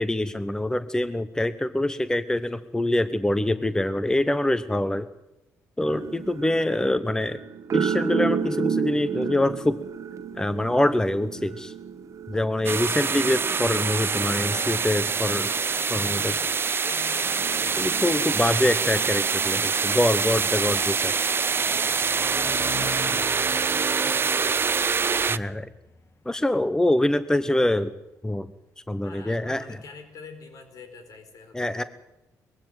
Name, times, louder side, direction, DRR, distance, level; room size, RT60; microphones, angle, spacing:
voice 1, 0.0-5.1 5.8-7.4 7.7-9.8 10.4-11.7 12.3-15.5 15.9-16.3 17.8-21.1 25.3-25.7 26.3-27.9 28.2-28.5 28.9-29.8 31.5-31.8, left 1 dB, 10° left, 13 dB, 0.9 m, -25 dB
sound 1, 5.9-21.0 21.6-21.9, right 6 dB, 55° right, 1.5 m, -34 dB
sound 2, 12.6-25.4, right 5 dB, 35° right, 0.7 m, -25 dB
voice 2, 15.3-18.9 21.4-24.8 29.0-31.9, left 4 dB, 65° left, 7 dB, 4.7 m, -46 dB
sound 3, 17.2-28.2, left 5 dB, 40° left, 2.2 m, -46 dB
20.5 x 15.5 x 9.1 m, 0.95 s
cardioid pair, 75°, 6 cm